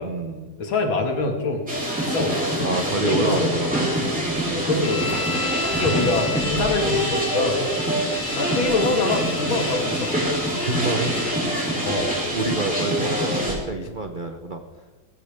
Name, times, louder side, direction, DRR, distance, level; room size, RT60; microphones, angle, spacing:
voice 1, 0.0-0.5 2.6-3.9 10.6-11.3 12.3-14.6, right 3 dB, 55° right, 5 dB, 0.5 m, -27 dB
voice 2, 0.6-1.7 2.0-2.5 3.1-3.5 4.7-5.5 5.8-7.6 8.4-10.4 11.8-12.2, left 3 dB, 75° left, 3 dB, 2.6 m, -25 dB
sound 1, 1.7-13.5, equal, 5° right, 3.7 m, -25 dB
sound 2, 4.8-11.4, left 4 dB, 45° left, 1.5 m, -33 dB
17.5 x 14.5 x 3.5 m, 1.3 s
omnidirectional pair, 2.2 m